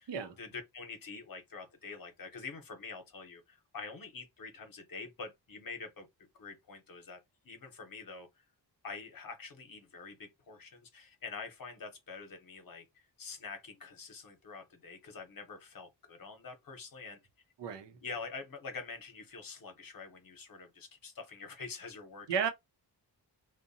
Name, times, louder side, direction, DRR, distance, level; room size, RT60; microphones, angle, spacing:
voice 1, 0.4-8.3 8.8-17.2 18.0-22.3, left 4 dB, 55° left, 0.8 m, -46 dB
voice 2, 17.6-18.0 22.3-22.5, right 7 dB, 80° right, 0.7 m, -33 dB
2.7 x 2.2 x 2.6 m
wide cardioid pair, 95°, 42 cm